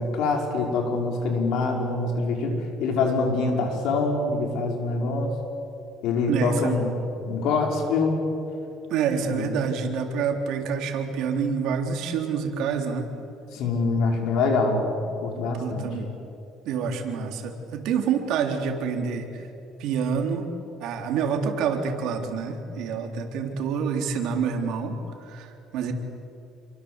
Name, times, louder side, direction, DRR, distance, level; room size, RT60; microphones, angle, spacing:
voice 1, 0.0-5.3 6.0-6.9 7.2-8.3 9.2-9.6 13.5-14.9 15.2-15.9, left 3 dB, 70° left, 2 dB, 5.3 m, -25 dB
voice 2, 6.3-6.8 8.9-13.1 15.6-16.1 16.6-19.5 19.8-20.5 20.8-25.9, right 6 dB, 65° right, 4 dB, 3.6 m, -27 dB
28.5 x 23.5 x 8.3 m, 2.8 s
cardioid pair, 150°, 0 cm